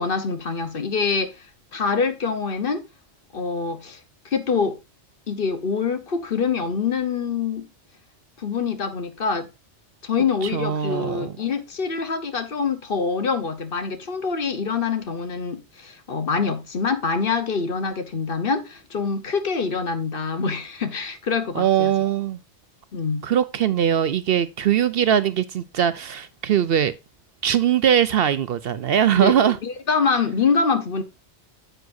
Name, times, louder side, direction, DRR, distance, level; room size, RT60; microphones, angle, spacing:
voice 1, 0.0-1.4 1.7-2.8 3.3-4.0 4.2-4.8 5.3-7.7 8.4-9.5 10.0-21.9 22.9-23.3 29.1-31.0, left 5 dB, 55° left, 1.1 m, -25 dB
voice 2, 10.4-11.3 21.5-22.4 23.2-26.9 27.4-29.6, right 9 dB, 60° right, 0.7 m, -21 dB
9.5 x 7.8 x 2.6 m
omnidirectional pair, 1.2 m